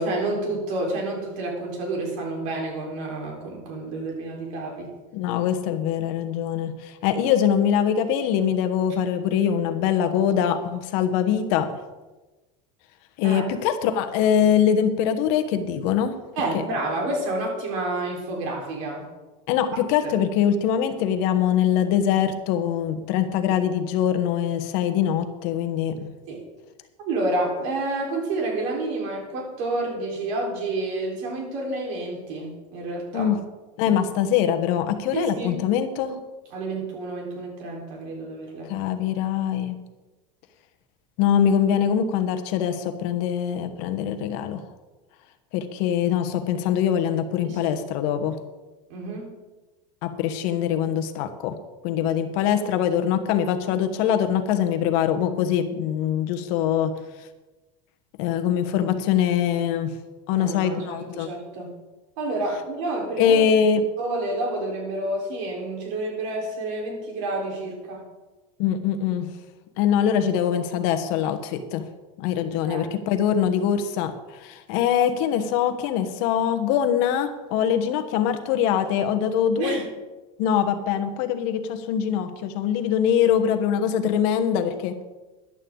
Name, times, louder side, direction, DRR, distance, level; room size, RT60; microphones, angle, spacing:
voice 1, 0.0-4.9 13.2-13.4 16.4-19.1 20.0-20.1 26.3-26.5 27.0-33.3 35.1-35.6 36.5-38.7 47.4-47.7 48.9-49.3 60.3-61.7 62.2-63.4 64.0-68.0 72.7-72.9 79.6-79.8, right 2 dB, 65° right, 0 dB, 4.2 m, -29 dB
voice 2, 5.1-11.7 13.2-16.2 19.5-26.1 33.1-33.4 33.8-36.2 38.7-39.7 41.2-44.6 45.5-48.4 50.0-51.5 51.8-56.9 58.2-59.9 60.3-61.3 63.2-63.8 68.6-69.3 69.8-71.8 72.2-74.1 74.4-79.8 80.4-84.9, left 9 dB, 55° left, 7 dB, 1.2 m, -23 dB
14.0 x 11.0 x 3.8 m, 1.1 s
supercardioid pair, 165°, 17 cm